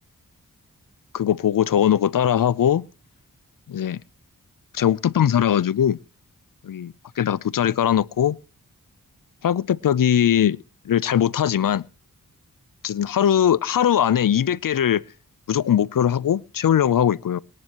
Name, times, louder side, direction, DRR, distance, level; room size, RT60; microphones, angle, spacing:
voice 1, 1.1-2.9 3.7-4.0 4.7-6.0 6.6-8.4 9.4-10.6 10.9-11.9 12.8-15.0 15.5-17.4, left 9 dB, 70° left, 0.6 m, -20 dB
21.5 x 11.0 x 3.0 m
cardioid pair, 40°, 34 cm